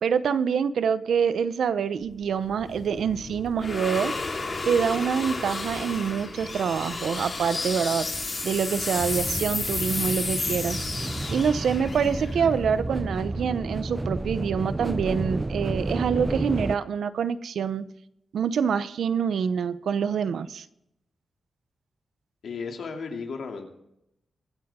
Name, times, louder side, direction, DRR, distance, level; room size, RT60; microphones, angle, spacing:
voice 1, 0.0-4.2 4.7-8.1 8.4-17.9 18.3-20.7, right 7 dB, 85° right, 14 dB, 0.7 m, -26 dB
sound 1, 2.1-13.3, left 3 dB, 35° left, 3.8 m, -32 dB
sound 2, 9.0-16.8, right 2 dB, 20° right, 0.5 m, -31 dB
voice 2, 22.4-23.7, left 5 dB, 80° left, 2 dB, 2.7 m, -34 dB
24.0 x 8.8 x 3.6 m, 0.81 s
wide cardioid pair, 130°, 0 cm